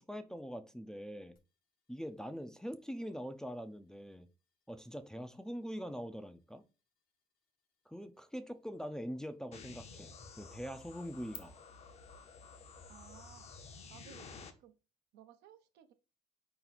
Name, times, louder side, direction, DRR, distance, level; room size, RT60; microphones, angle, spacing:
voice 1, 0.0-1.4 1.9-4.3 4.7-6.6 7.9-11.6, equal, 5° left, 0.4 m, -43 dB
sound 1, 1.4-11.4, left 8 dB, 65° left, 1.0 m, -63 dB
sound 2, 9.5-14.5, left 4 dB, 40° left, 0.7 m, -52 dB
voice 2, 12.9-13.5 13.9-14.3 14.6-14.7 15.1-15.9, right 10 dB, 85° right, 0.7 m, -58 dB
4.4 x 2.9 x 4.0 m
cardioid pair, 110°, 17 cm